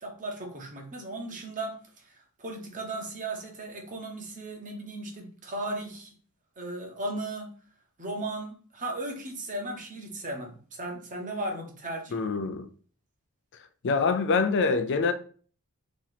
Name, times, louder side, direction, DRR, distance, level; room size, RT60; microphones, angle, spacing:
voice 1, 0.0-6.1 6.6-7.5 8.0-12.2, right 2 dB, 35° right, 1.0 m, -36 dB
voice 2, 12.1-12.7 13.8-15.1, left 4 dB, 55° left, 0.5 m, -25 dB
3.0 x 2.9 x 3.9 m
head